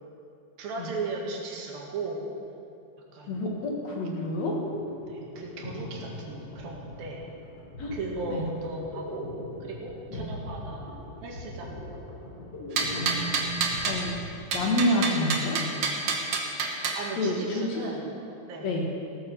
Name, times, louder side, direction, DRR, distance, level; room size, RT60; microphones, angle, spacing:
voice 1, 0.6-2.3 3.1-3.4 5.1-7.2 7.9-9.3 9.6-11.8 17.0-18.1 18.5-18.7, right 3 dB, 75° right, -1 dB, 3.7 m, -37 dB
voice 2, 3.3-4.5 7.8-7.9 8.3-8.5 10.1-10.3 12.9-14.2 14.5-15.6 17.2-17.8 18.6-18.9, left 1 dB, 55° left, -1 dB, 2.6 m, -28 dB
sound 1, 4.4-14.9, left 1 dB, 35° left, 2.7 m, -40 dB
sound 2, 12.8-14.0 14.5-17.0, right 4 dB, 60° right, 1.7 m, -28 dB
17.0 x 9.3 x 6.5 m, 2.5 s
omnidirectional pair, 4.2 m